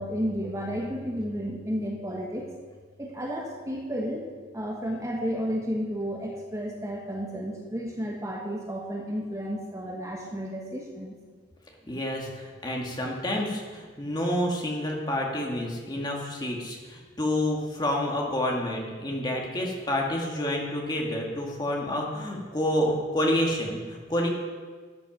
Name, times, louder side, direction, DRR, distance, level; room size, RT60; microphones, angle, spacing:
voice 1, 0.0-2.5 3.0-4.2 4.5-11.2, equal, 15° right, -1 dB, 1.3 m, -32 dB
voice 2, 11.9-24.3, left 1 dB, 20° left, 0 dB, 1.8 m, -29 dB
13.5 x 8.1 x 6.0 m, 1.5 s
head